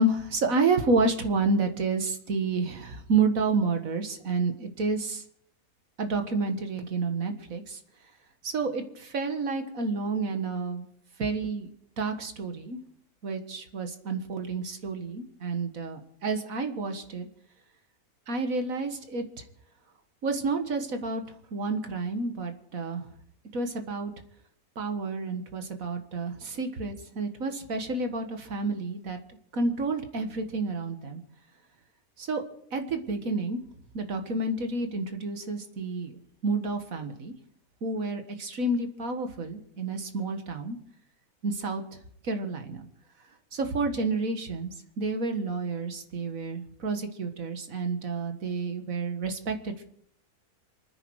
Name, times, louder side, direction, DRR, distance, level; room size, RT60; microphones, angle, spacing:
voice 1, 0.0-5.2 6.0-7.8 8.4-10.9 11.2-11.7 12.0-12.8 13.2-17.3 18.3-19.4 20.2-21.2 21.5-23.0 23.5-24.1 24.8-29.2 29.5-31.2 32.2-32.4 32.7-33.6 33.9-36.1 36.4-37.3 37.8-40.8 41.4-41.8 42.2-42.9 43.5-49.8, right 3 dB, 70° right, 6 dB, 2.1 m, -30 dB
26.5 x 10.0 x 4.8 m, 0.66 s
omnidirectional pair, 1.5 m